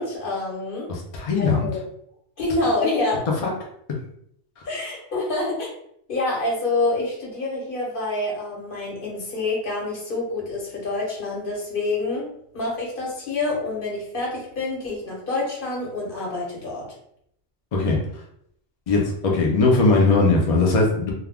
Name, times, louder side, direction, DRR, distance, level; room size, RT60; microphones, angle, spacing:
voice 1, 0.0-0.9 1.4-1.8 2.4-3.2 4.6-5.7 6.1-12.3 12.5-16.9, left 2 dB, 45° left, -3 dB, 1.1 m, -27 dB
voice 2, 0.9-1.7 3.9-4.0 17.7-18.0 18.9-21.1, left 3 dB, 70° left, -1 dB, 0.3 m, -19 dB
2.3 x 2.2 x 3.4 m, 0.69 s
omnidirectional pair, 1.4 m